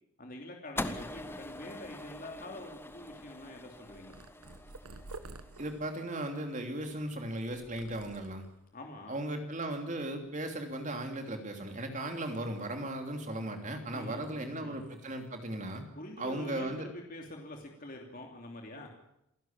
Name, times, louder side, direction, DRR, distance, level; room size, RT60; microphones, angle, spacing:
voice 1, 0.2-4.1 8.7-9.2 13.9-14.8 15.9-18.9, left 1 dB, 40° left, 1 dB, 3.1 m, -46 dB
sound 1, 0.8-7.1, left 1 dB, 10° left, 1.0 m, -43 dB
Purr, 3.8-8.7 9.3-9.7 10.0-11.2 11.6-13.7 14.0-15.3 15.5-15.8 16.5-16.8, right 3 dB, 85° right, 1.4 m, -53 dB
voice 2, 5.6-8.4 9.1-15.8 16.2-16.9, right 1 dB, 35° right, 5 dB, 3.0 m, -37 dB
27.5 x 12.0 x 8.9 m, 0.80 s
head